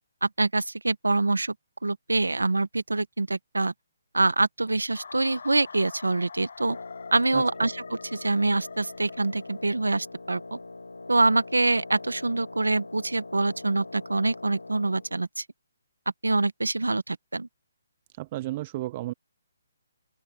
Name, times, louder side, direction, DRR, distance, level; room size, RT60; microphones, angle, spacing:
voice 1, 0.2-1.5 1.8-3.7 4.1-6.8 7.1-10.6 11.1-15.4 16.2-17.5, right 2 dB, 90° right, 1.2 m, -25 dB
sound 1, 4.9-9.9, left 5 dB, 65° left, 1.3 m, -44 dB
Wind instrument woodwind instrument, 6.6-15.2, left 3 dB, 85° left, 2.1 m, -43 dB
voice 2, 7.3-7.7 18.2-19.1, right 17 dB, 35° right, 0.5 m, -33 dB
open air
figure-of-eight pair, 145°, 0 cm